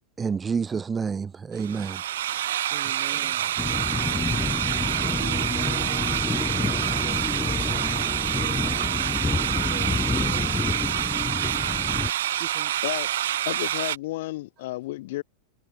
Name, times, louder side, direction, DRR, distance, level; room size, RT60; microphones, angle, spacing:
voice 1, 0.2-2.0 3.1-3.3, right 5 dB, 15° right, 0.8 m, -29 dB
sound 1, 1.6-14.0, right 12 dB, 60° right, 0.7 m, -27 dB
voice 2, 2.7-3.5 4.1-4.5 4.9-6.2 6.5-8.7 9.2-10.5 12.4-12.7, right 17 dB, 35° right, 3.3 m, -42 dB
sound 2, 3.6-12.1, left 3 dB, 10° left, 2.5 m, -29 dB
voice 3, 13.5-15.2, left 18 dB, 50° left, 2.4 m, -32 dB
figure-of-eight pair, 90°, 0 cm